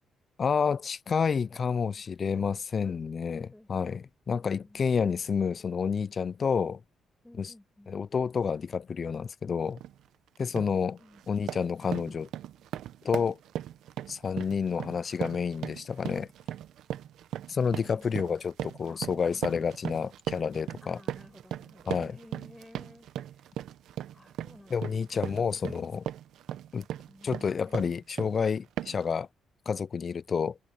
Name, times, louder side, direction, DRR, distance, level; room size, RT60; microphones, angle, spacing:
voice 1, 0.4-6.8 7.4-7.5 7.9-9.8 10.4-11.0 11.3-12.3 13.0-13.4 14.1-16.3 17.5-21.0 21.9-22.2 24.7-26.0 26.7-26.9 27.2-29.3 29.7-30.6, left 6 dB, 45° left, 0.4 m, -29 dB
voice 2, 1.5-2.0 2.3-2.5 2.8-3.0 3.3-3.7 4.3-4.8 7.2-7.9 11.0-11.2 17.6-18.5 18.8-19.1 19.4-19.5 20.8-23.5 24.1-26.1 27.1-27.9, left 1 dB, 10° left, 5.6 m, -55 dB
sound 1, 9.8-10.0 10.4-10.8 11.1-28.4 28.8-29.1, right 11 dB, 80° right, 0.9 m, -38 dB
cardioid pair, 90°, 0 cm